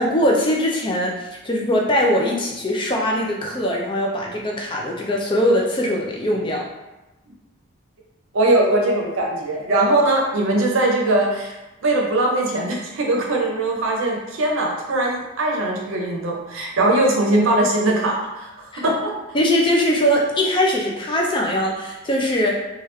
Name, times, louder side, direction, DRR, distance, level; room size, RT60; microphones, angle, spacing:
voice 1, 0.0-6.7 18.7-18.8 19.3-22.6, equal, 25° left, -1 dB, 0.4 m, -21 dB
voice 2, 8.3-11.6 11.8-19.1, right 2 dB, 70° right, -1 dB, 0.6 m, -20 dB
3.0 x 2.3 x 3.2 m, 1.0 s
head